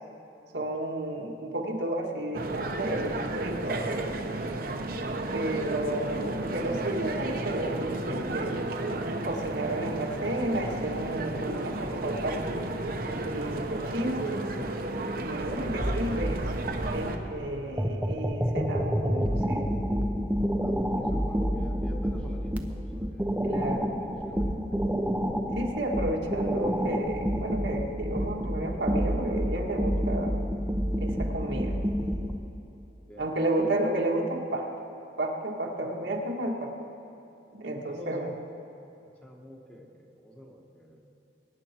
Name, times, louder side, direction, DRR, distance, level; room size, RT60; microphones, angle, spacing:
voice 1, 0.5-4.2 5.3-8.6 9.2-12.4 13.2-14.3 15.2-16.4 16.9-19.7 23.4-23.9 25.5-30.3 31.0-31.7 33.2-34.7 35.2-36.7 37.5-38.3, right 1 dB, 80° right, 0 dB, 1.8 m, -32 dB
sound 1, 2.3-17.2, right 2 dB, 50° right, 1.0 m, -33 dB
sound 2, 15.4-32.4, equal, 10° right, 0.7 m, -29 dB
voice 2, 17.5-18.3 20.6-23.2 24.2-24.7 33.1-33.7 37.8-38.3 39.2-41.1, equal, 5° left, -1 dB, 1.3 m, -48 dB
21.5 x 10.0 x 4.5 m, 3.0 s
head